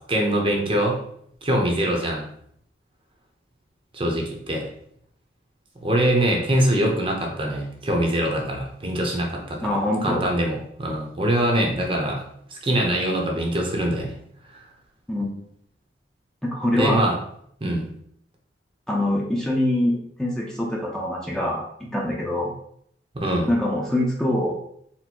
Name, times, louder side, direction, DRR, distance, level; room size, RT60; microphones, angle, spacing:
voice 1, 0.1-1.0 1.4-2.3 3.9-4.6 5.8-12.2 12.5-14.1 16.7-17.2 17.6-17.9 23.1-23.5, right 1 dB, 30° right, 1 dB, 0.7 m, -23 dB
voice 2, 9.6-10.2 15.1-15.3 16.4-17.1 18.9-22.5 23.5-24.6, left 1 dB, 5° left, -3 dB, 0.6 m, -24 dB
4.3 x 2.1 x 4.3 m, 0.69 s
head